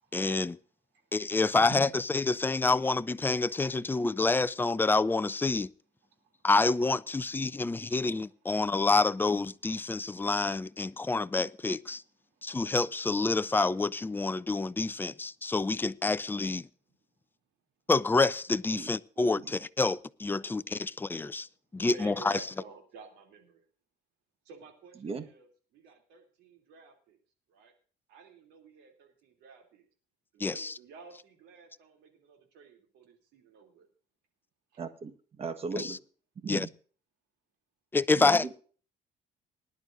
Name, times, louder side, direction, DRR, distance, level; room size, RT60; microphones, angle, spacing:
voice 1, 0.1-0.6 1.1-5.7 6.4-12.0 12.4-16.7 17.9-21.5 21.7-22.3 30.4-30.7 35.8-36.0 36.5-36.7 37.9-38.4, left 3 dB, 10° left, 0.4 m, -28 dB
voice 2, 6.0-6.5 7.4-8.8 9.8-10.3 10.8-11.1 12.2-12.6 16.9-17.0 20.4-20.6 21.8-23.6 24.4-27.2 27.5-27.7 28.1-29.9 30.3-33.9 34.7-34.8, right 4 dB, 90° right, 3.0 m, -54 dB
voice 3, 34.8-35.1 35.4-36.0 36.4-36.7 38.1-38.6, right 4 dB, 35° right, 1.4 m, -37 dB
20.0 x 11.0 x 2.6 m
cardioid pair, 110°, 17 cm